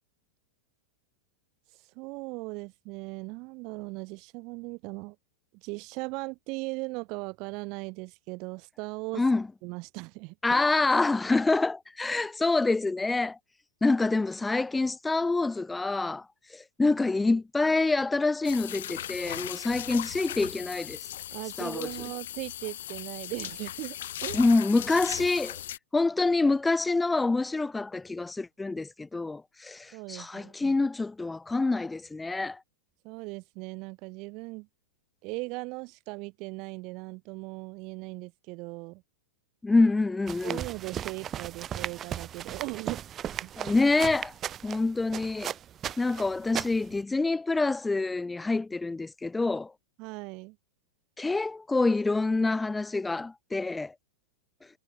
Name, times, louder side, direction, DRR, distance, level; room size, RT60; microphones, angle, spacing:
voice 1, 2.0-5.2 5.6-9.3 9.6-10.6 21.3-24.4 29.9-30.8 33.0-34.7 35.2-39.0 40.4-43.0 43.4-43.5 50.0-50.6, right 27 dB, 45° right, 1.8 m, -38 dB
voice 2, 9.1-9.5 10.4-13.4 13.8-16.2 16.5-21.0 21.6-21.9 24.3-25.6 25.9-32.6 39.6-40.6 43.6-44.3 44.6-45.5 46.0-49.7 51.2-53.9, left 3 dB, 10° left, 0.9 m, -26 dB
sound 1, 18.4-25.8, left 12 dB, 70° left, 1.5 m, -38 dB
sound 2, 40.3-47.0, right 10 dB, 30° right, 2.2 m, -37 dB
hypercardioid pair, 115°, 0 cm